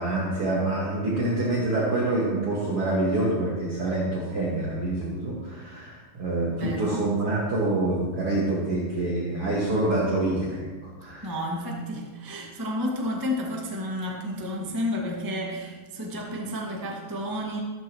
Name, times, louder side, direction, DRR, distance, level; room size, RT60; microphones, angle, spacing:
voice 1, 0.0-11.3, right 2 dB, 45° right, -6 dB, 2.5 m, -26 dB
voice 2, 6.5-7.0 11.2-17.6, left 1 dB, 10° right, -3 dB, 1.0 m, -31 dB
14.5 x 13.5 x 3.1 m, 1.4 s
omnidirectional pair, 3.9 m